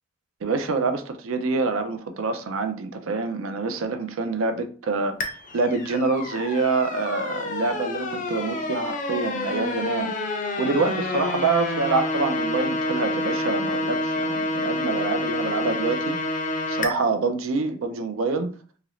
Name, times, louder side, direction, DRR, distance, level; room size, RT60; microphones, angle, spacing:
voice 1, 0.4-5.2 5.5-10.1 10.6-16.2 16.7-18.5, right 3 dB, 75° right, 0.4 m, -26 dB
sound 1, 5.2-16.9, left 2 dB, 35° left, 0.4 m, -28 dB
2.8 x 2.4 x 3.0 m
head